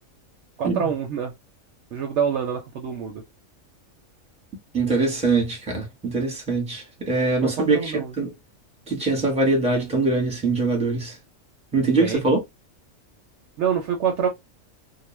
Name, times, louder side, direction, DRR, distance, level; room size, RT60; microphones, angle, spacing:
voice 1, 0.6-1.3 1.9-3.2 7.4-8.1 12.0-12.2 13.6-14.3, right 7 dB, 65° right, 0.8 m, -26 dB
voice 2, 4.7-8.3 8.9-11.2 11.7-12.4, right 3 dB, 5° right, 0.9 m, -23 dB
2.4 x 2.1 x 3.1 m
omnidirectional pair, 1.4 m